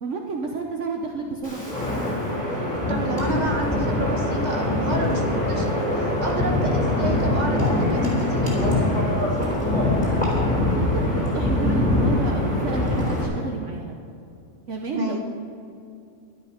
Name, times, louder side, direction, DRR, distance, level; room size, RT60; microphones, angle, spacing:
voice 1, 0.0-1.7 10.7-14.0 14.7-15.2, right 4 dB, 65° right, 2 dB, 1.2 m, -30 dB
Wind, 1.4-13.3, left 1 dB, 5° left, 3.9 m, -23 dB
voice 2, 2.9-8.9 14.9-15.2, right 1 dB, 30° right, 0 dB, 1.8 m, -30 dB
12.5 x 12.0 x 5.1 m, 2.6 s
omnidirectional pair, 1.4 m